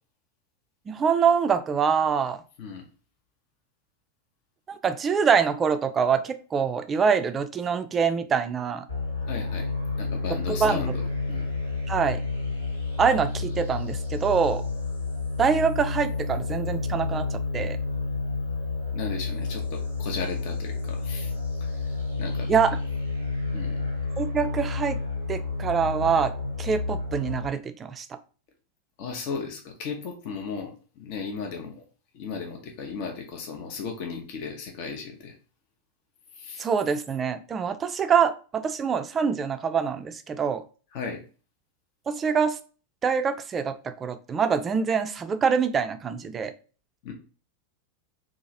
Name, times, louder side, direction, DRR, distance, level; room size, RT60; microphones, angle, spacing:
voice 1, 0.9-2.4 4.7-8.8 10.5-10.8 11.9-12.2 13.0-14.6 15.4-17.8 22.5-22.8 24.2-25.0 25.3-26.3 26.6-28.0 36.6-40.6 42.1-42.6 43.0-46.5, right 6 dB, 20° right, 10 dB, 0.3 m, -25 dB
sound 1, 8.9-27.5, left 3 dB, 85° left, 0.9 m, -30 dB
voice 2, 9.2-11.5 18.9-21.3 21.6-21.7 22.2-22.5 23.5-23.8 29.0-31.8 32.1-35.3 36.3-36.6 40.9-41.2 47.0-47.1, left 5 dB, 45° left, 3 dB, 0.5 m, -36 dB
2.8 x 2.4 x 2.6 m, 0.37 s
figure-of-eight pair, 90°, 0 cm